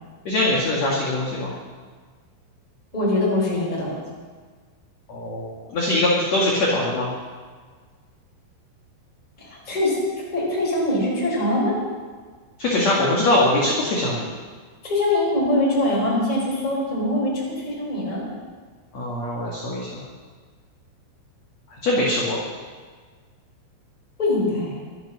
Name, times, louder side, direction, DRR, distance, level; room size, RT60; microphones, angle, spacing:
voice 1, 0.2-1.5 5.1-7.1 12.6-14.3 18.9-20.0 21.8-22.4, left 1 dB, 45° left, -4 dB, 2.4 m, -22 dB
voice 2, 2.9-4.0 9.4-10.0 10.3-11.8 14.8-18.2 24.2-24.7, left 1 dB, 10° left, -4 dB, 4.1 m, -23 dB
24.0 x 9.0 x 6.3 m, 1.5 s
omnidirectional pair, 5.7 m